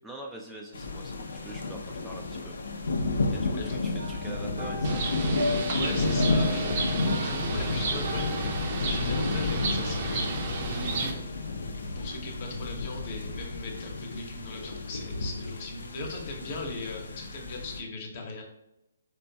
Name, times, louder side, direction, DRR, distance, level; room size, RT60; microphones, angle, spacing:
voice 1, 0.0-2.8 3.3-5.1, right 1 dB, 5° right, -2 dB, 0.3 m, -44 dB
sound 1, 0.7-17.8, left 3 dB, 75° left, 0.5 m, -31 dB
voice 2, 3.3-3.7 5.7-8.3 8.8-11.2 11.9-18.4, left 2 dB, 40° left, 2 dB, 0.8 m, -39 dB
sound 2, 4.0-13.6 13.8-14.2 14.6-14.7, left 1 dB, 90° right, 1.1 m, -40 dB
Bird, 4.8-11.1, right 3 dB, 45° right, 0.6 m, -32 dB
4.4 x 2.2 x 2.7 m, 0.87 s
hypercardioid pair, 145°, 0 cm